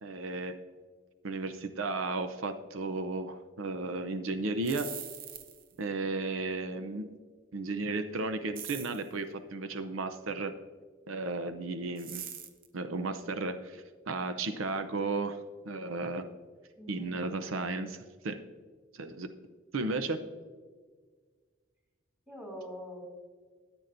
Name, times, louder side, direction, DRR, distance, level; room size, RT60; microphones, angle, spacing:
voice 1, 0.0-0.6 1.2-4.9 5.8-7.0 7.5-10.5 11.1-12.2 12.7-15.4 15.7-16.3 16.9-18.4 18.9-19.3 19.7-20.2, right 3 dB, 90° right, 9 dB, 0.7 m, -34 dB
sound 1, 4.5-5.8 8.6-9.1 12.0-12.7, right 9 dB, 45° right, 0.8 m, -42 dB
voice 2, 16.7-17.7 20.1-20.2 22.3-23.0, equal, 5° right, 0 dB, 2.5 m, -46 dB
13.5 x 8.9 x 2.6 m, 1.5 s
head